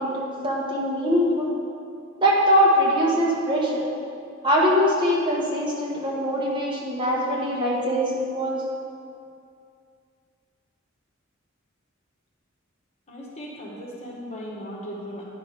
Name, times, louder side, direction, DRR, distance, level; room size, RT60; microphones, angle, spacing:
voice 1, 0.0-1.5 2.2-3.9 4.4-8.6, equal, 25° right, -5 dB, 1.3 m, -22 dB
voice 2, 13.1-15.3, equal, 30° left, -4 dB, 1.5 m, -37 dB
10.0 x 6.0 x 4.9 m, 2.4 s
head